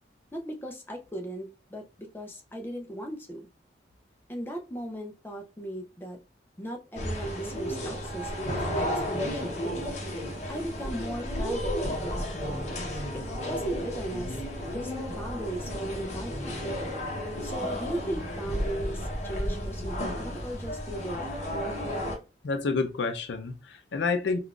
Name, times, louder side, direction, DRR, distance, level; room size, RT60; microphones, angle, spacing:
voice 1, 0.3-3.5 4.3-6.2 6.6-9.7 10.5-12.3 13.1-14.4 14.7-16.6 17.4-21.3, right 1 dB, 10° left, 0.4 m, -37 dB
sound 1, 6.9-22.2, equal, 40° left, 0.8 m, -33 dB
voice 2, 22.4-24.4, left 4 dB, 80° left, 0.4 m, -29 dB
3.7 x 2.4 x 2.3 m
head